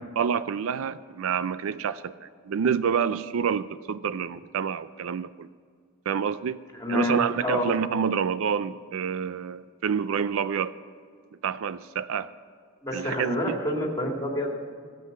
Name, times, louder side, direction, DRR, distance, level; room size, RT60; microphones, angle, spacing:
voice 1, 0.2-5.5 6.1-6.6 6.9-10.7 11.4-12.3 12.9-13.6, right 7 dB, 65° right, 15 dB, 0.4 m, -28 dB
voice 2, 6.7-7.6 12.8-14.5, equal, 15° left, -1 dB, 2.4 m, -28 dB
16.0 x 7.8 x 6.6 m, 2.1 s
head